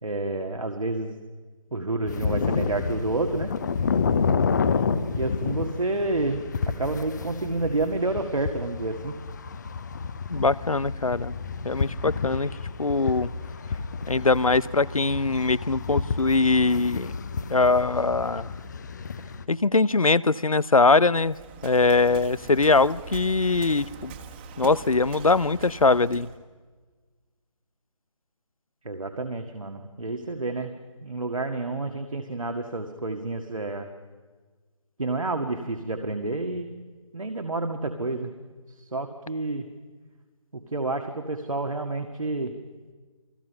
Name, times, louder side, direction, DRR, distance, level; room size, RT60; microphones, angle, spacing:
voice 1, 0.0-1.2 1.7-3.5 5.1-6.4 6.8-9.2 28.9-30.7 31.0-33.9 35.0-36.7 37.1-38.3 38.9-39.7 40.5-42.5, right 2 dB, 75° right, 5 dB, 1.9 m, -29 dB
sound 1, 2.0-19.4, left 5 dB, 35° left, 0.9 m, -30 dB
voice 2, 10.3-11.4 11.6-13.3 14.1-17.1 17.5-18.5 19.5-21.4 21.6-24.1 24.6-26.3, left 3 dB, 85° left, 20 dB, 0.7 m, -22 dB
Waves surf, 21.1-26.4, right 6 dB, 20° right, 1.5 m, -42 dB
29.0 x 20.5 x 5.6 m, 1.4 s
figure-of-eight pair, 150°, 17 cm